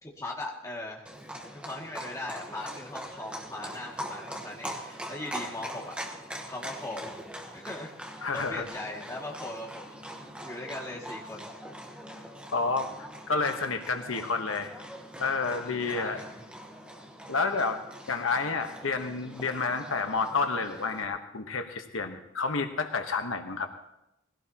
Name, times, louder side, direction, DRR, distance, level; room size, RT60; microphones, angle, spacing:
voice 1, 0.0-1.1 1.5-5.9 6.4-7.2 7.5-10.0 10.4-11.5 15.5-16.3, left 2 dB, 15° left, -3 dB, 2.2 m, -39 dB
Livestock farm animals working animals, 1.0-21.0, equal, 5° right, 1.1 m, -42 dB
voice 2, 8.2-8.6 12.5-14.7 15.2-16.2 17.3-17.8 18.1-23.7, left 4 dB, 90° left, 5 dB, 1.2 m, -30 dB
20.5 x 16.5 x 2.9 m, 0.87 s
head